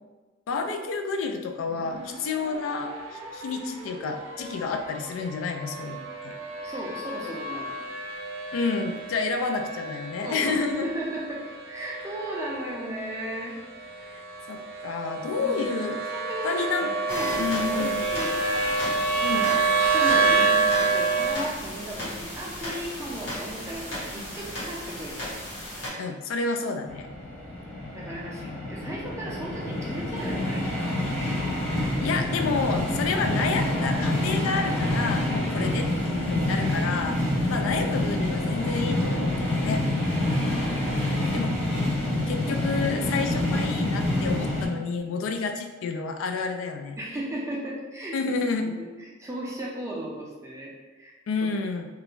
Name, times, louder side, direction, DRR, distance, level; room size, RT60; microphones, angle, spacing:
voice 1, 0.5-6.3 8.5-10.9 14.0-14.2 14.5-16.0 16.4-16.9 17.2-18.0 19.2-19.5 26.0-27.1 32.0-37.2 37.5-39.8 41.3-41.6 42.3-47.0 48.1-48.7 51.3-51.9, left 4 dB, 85° left, 6 dB, 0.3 m, -30 dB
sound 1, 1.7-21.4, right 4 dB, 90° right, 0.4 m, -29 dB
voice 2, 6.6-7.8 10.2-13.6 15.4-15.7 16.1-18.8 19.3-19.5 19.8-20.6 20.9-25.2 27.9-31.0 32.1-32.2 35.6-35.8 40.9-41.5 47.0-48.2 48.6-48.9 49.2-51.1, right 1 dB, 15° right, -4 dB, 0.4 m, -36 dB
sound 2, 17.1-25.9, equal, 65° left, 1.2 m, -35 dB
sound 3, 26.9-44.7, left 1 dB, 30° left, 0.7 m, -27 dB
2.4 x 2.1 x 3.0 m, 1.3 s
head